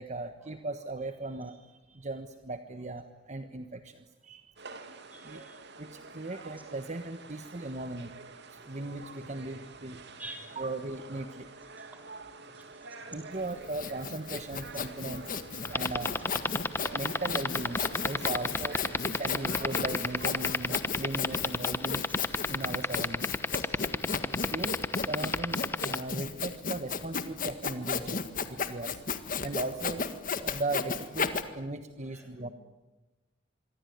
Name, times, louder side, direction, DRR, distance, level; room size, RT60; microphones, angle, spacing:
voice 1, 0.0-4.5 5.2-5.4 5.8-8.1 8.6-10.0 10.5-11.5 13.1-15.2 15.7-16.2 16.9-22.0 22.5-23.3 24.5-29.0 29.4-30.0 30.4-32.5, right 2 dB, 35° right, 8 dB, 1.3 m, -38 dB
sound 1, 4.6-20.5, right 3 dB, 60° right, 2.7 m, -48 dB
voice 2, 5.0-5.6 10.2-10.6 11.8-12.0 12.5-12.6 23.9-24.6 32.0-32.5, right 2 dB, 10° right, 3 dB, 6.8 m, -49 dB
Sawing, 13.4-31.4, left 5 dB, 45° left, 1.8 m, -34 dB
sound 2, 15.6-26.0, left 2 dB, 10° left, 1.0 m, -28 dB
26.5 x 23.5 x 9.5 m, 1.1 s
head